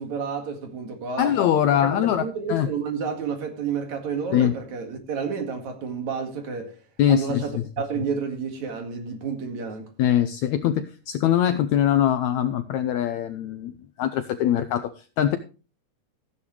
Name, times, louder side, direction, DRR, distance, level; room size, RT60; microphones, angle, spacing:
voice 1, 0.0-1.3 1.7-6.7 7.1-9.9, right 6 dB, 60° right, 3.2 m, -30 dB
voice 2, 1.2-2.7 4.3-4.5 7.0-7.6 10.0-15.4, left 10 dB, 75° left, 1.7 m, -22 dB
15.5 x 9.5 x 3.2 m
omnidirectional pair, 3.9 m